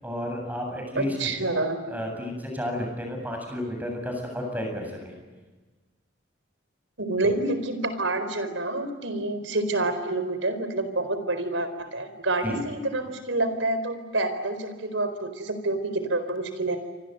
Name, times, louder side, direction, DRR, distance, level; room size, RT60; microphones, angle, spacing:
voice 1, 0.0-1.3 1.9-5.1 12.4-12.6, left 1 dB, 10° right, 2 dB, 7.9 m, -32 dB
voice 2, 1.0-1.8 7.0-16.8, right 2 dB, 85° right, 10 dB, 4.4 m, -28 dB
29.5 x 25.0 x 8.1 m, 1.3 s
head